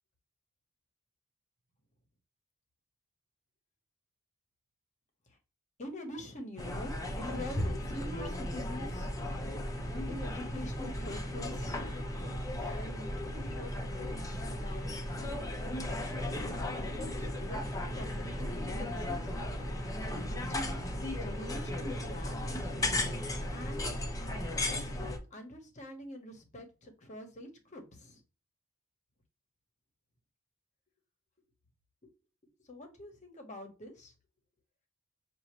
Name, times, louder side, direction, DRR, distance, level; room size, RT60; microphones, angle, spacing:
voice 1, 5.8-9.1 10.1-11.8 12.5-19.2 20.2-20.8 21.2-22.7 23.5-23.8 24.6-28.2 32.0-32.1 32.7-34.1, left 1 dB, 35° left, 1.1 m, -45 dB
sound 1, 6.6-25.2, left 1 dB, 15° left, 0.7 m, -36 dB
6.3 x 2.6 x 3.1 m
head